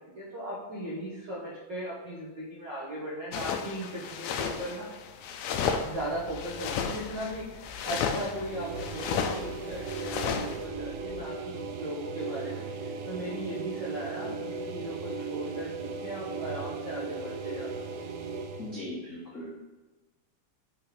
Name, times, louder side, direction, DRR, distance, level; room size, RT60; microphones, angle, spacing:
voice 1, 0.1-4.9 5.8-17.7, right 1 dB, 60° right, -6 dB, 1.1 m, -38 dB
sound 1, 3.3-10.6, left 6 dB, 85° left, 1.6 m, -33 dB
sound 2, 5.7-11.6, left 5 dB, 35° left, 1.8 m, -48 dB
sound 3, 8.3-18.8, right 4 dB, 80° right, 1.6 m, -37 dB
voice 2, 18.6-19.5, left 1 dB, 55° left, -7 dB, 0.8 m, -39 dB
5.5 x 4.9 x 5.4 m, 1.2 s
omnidirectional pair, 3.8 m